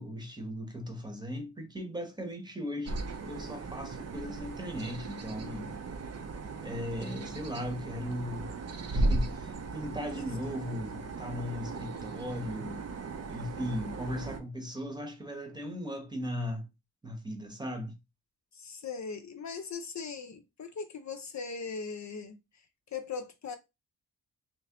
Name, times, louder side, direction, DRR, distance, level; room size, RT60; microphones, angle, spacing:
voice 1, 0.0-3.0 3.2-5.7 6.6-8.5 8.9-12.9 13.3-16.7 17.0-17.9, equal, 10° right, 0.9 m, -37 dB
sound 1, 2.9-14.4, right 2 dB, 45° right, 0.6 m, -36 dB
voice 2, 10.1-10.8 18.5-22.4 22.9-23.6, left 5 dB, 50° left, 0.5 m, -40 dB
3.4 x 3.0 x 2.9 m
wide cardioid pair, 115°, 37 cm